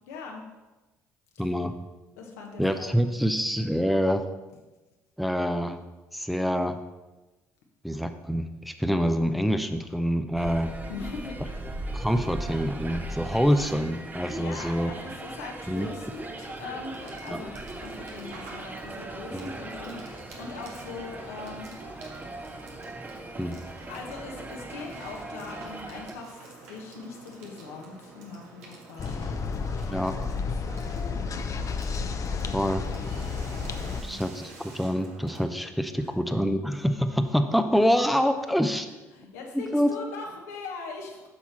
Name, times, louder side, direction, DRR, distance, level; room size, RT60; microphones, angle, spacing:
voice 1, 0.1-0.5 1.3-1.5 2.2-2.9 10.9-11.4 14.3-21.7 23.9-31.4 32.2-32.6 33.8-34.2 36.0-36.1 38.7-38.8 39.1-41.3, left 4 dB, 85° left, 1 dB, 1.3 m, -41 dB
voice 2, 1.4-1.7 2.6-4.2 5.2-5.8 6.1-6.8 7.8-10.7 11.9-14.9 15.7-15.9 17.3-17.4 19.3-19.5 23.4-23.6 29.9-30.3 32.5-32.8 34.0-38.9 39.5-39.9, equal, ahead, 7 dB, 0.7 m, -26 dB
sound 1, 10.4-26.1, right 2 dB, 20° right, 0.9 m, -39 dB
Water / Water tap faucet / Sink (filling or washing), 15.7-35.4, right 3 dB, 85° right, 1.3 m, -48 dB
sound 2, 29.0-34.0, left 4 dB, 45° left, 0.7 m, -31 dB
8.6 x 5.8 x 4.4 m, 1.1 s
hypercardioid pair, 55°, 8 cm